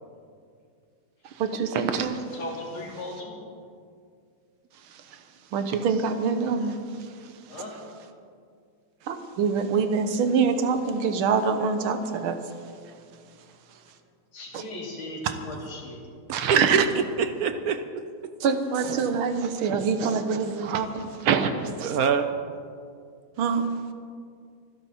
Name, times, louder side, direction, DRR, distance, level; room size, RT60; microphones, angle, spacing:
voice 1, 1.2-2.3 4.9-5.2 5.5-7.6 9.0-12.5 14.5-14.6 15.2-15.4 16.3-16.9 18.4-22.0 23.4-23.8, right 6 dB, 85° right, 8 dB, 1.8 m, -25 dB
voice 2, 2.3-3.4 7.5-7.8 14.3-16.0, left 1 dB, 85° left, -2 dB, 3.6 m, -37 dB
voice 3, 16.9-17.8 21.8-22.3, right 6 dB, 70° right, 9 dB, 0.8 m, -26 dB
25.5 x 10.5 x 4.2 m, 2.3 s
omnidirectional pair, 2.3 m